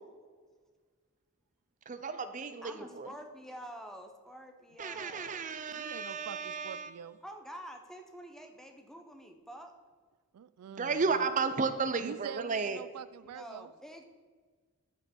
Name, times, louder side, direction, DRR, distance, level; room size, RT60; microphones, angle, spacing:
voice 1, 1.9-3.1 4.8-6.9 10.7-12.8, right 4 dB, 35° right, 10 dB, 0.5 m, -33 dB
voice 2, 2.6-5.4 7.2-9.7 13.2-14.0, equal, ahead, 4 dB, 0.8 m, -48 dB
voice 3, 5.7-7.2 10.3-11.3 12.0-13.7, right 8 dB, 85° right, 16 dB, 0.4 m, -45 dB
13.5 x 5.2 x 4.4 m, 1.5 s
head